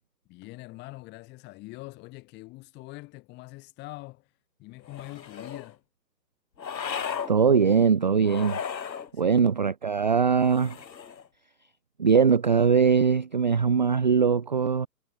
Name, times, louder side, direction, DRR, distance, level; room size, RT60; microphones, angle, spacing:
voice 1, 0.3-4.3 4.6-5.8 9.1-9.5, left 21 dB, 20° left, 3.3 m, -44 dB
sound 1, 4.9-5.7 6.6-7.3 8.2-9.1 10.4-11.3, left 7 dB, 90° left, 0.9 m, -35 dB
voice 2, 7.3-8.6 9.1-10.8 12.0-14.9, right 6 dB, 30° right, 0.5 m, -21 dB
figure-of-eight pair, 135°, 50 cm